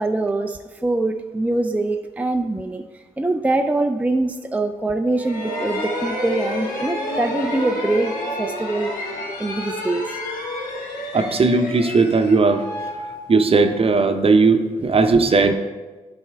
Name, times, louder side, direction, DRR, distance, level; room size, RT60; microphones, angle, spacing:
voice 1, 0.0-2.8 3.2-8.1 8.4-8.9 9.4-10.1, right 2 dB, 10° right, 5 dB, 0.5 m, -23 dB
sound 1, 5.2-13.8, left 1 dB, 85° left, 1.2 m, -29 dB
voice 2, 11.1-12.6 13.3-15.6, right 4 dB, 45° right, 7 dB, 0.8 m, -17 dB
11.0 x 4.3 x 3.6 m, 1.2 s
supercardioid pair, 50°, 14 cm